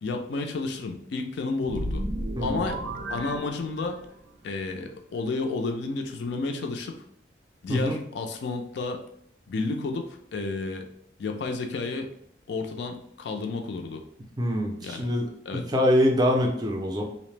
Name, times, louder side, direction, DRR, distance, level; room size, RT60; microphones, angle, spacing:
voice 1, 0.0-2.0 2.4-2.8 3.1-4.0 4.4-7.0 7.6-9.0 9.5-10.9 11.2-12.1 12.5-14.0 14.8-15.1 15.5-15.6, left 3 dB, 65° left, 4 dB, 0.4 m, -31 dB
sound 1, 1.6-4.2, right 1 dB, 85° right, 0.6 m, -33 dB
voice 2, 2.4-2.7 7.7-8.0 14.4-17.0, equal, 20° right, 1 dB, 0.4 m, -24 dB
2.7 x 2.0 x 3.1 m, 0.69 s
head